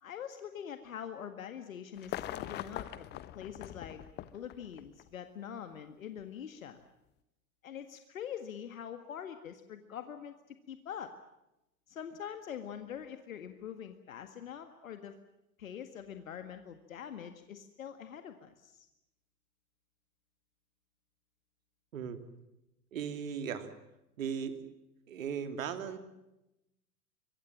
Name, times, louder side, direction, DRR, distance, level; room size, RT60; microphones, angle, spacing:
voice 1, 0.0-4.0 4.3-6.8 7.6-10.3 10.7-11.1 11.9-15.1 15.6-18.9, left 8 dB, 60° left, 8 dB, 1.8 m, -44 dB
sound 1, 2.0-5.1 6.2-6.3, left 13 dB, 25° left, 1.0 m, -42 dB
voice 2, 22.9-23.7 24.2-24.6 25.1-26.0, right 7 dB, 60° right, 9 dB, 3.1 m, -37 dB
26.0 x 23.0 x 7.4 m, 0.90 s
figure-of-eight pair, 100°, 45 cm